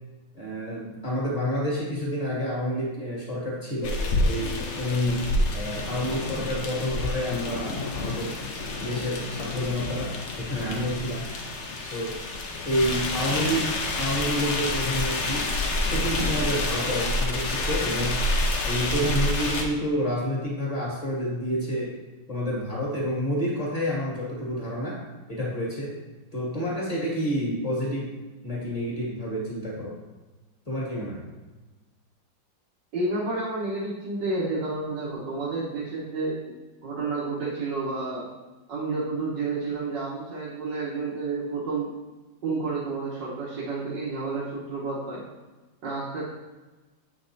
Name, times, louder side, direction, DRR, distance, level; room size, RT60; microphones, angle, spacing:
voice 1, 0.3-4.0 4.3-8.4 8.8-11.3 11.8-12.2 12.6-15.5 15.8-18.3 18.6-22.0 22.3-25.0 25.3-26.0 26.3-30.0 30.7-31.2, equal, 20° left, -6 dB, 1.8 m, -29 dB
sound 1, 3.8-19.6, left 2 dB, 55° left, 0.8 m, -28 dB
voice 2, 32.9-36.4 36.8-38.3 38.7-41.9 42.4-45.2 45.8-46.3, right 3 dB, 70° right, -8 dB, 1.9 m, -30 dB
7.8 x 5.3 x 2.7 m, 1.2 s
omnidirectional pair, 2.0 m